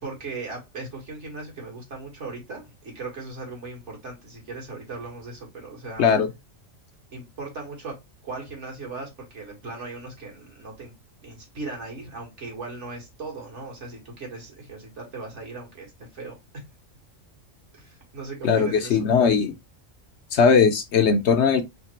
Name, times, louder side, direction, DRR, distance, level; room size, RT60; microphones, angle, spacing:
voice 1, 0.0-6.1 7.1-8.0 8.2-10.9 11.2-16.6 17.7-19.0, right 3 dB, 60° right, 1.9 m, -38 dB
voice 2, 18.4-19.5 20.3-21.6, left 6 dB, 65° left, 0.8 m, -19 dB
3.7 x 3.3 x 3.1 m
omnidirectional pair, 1.4 m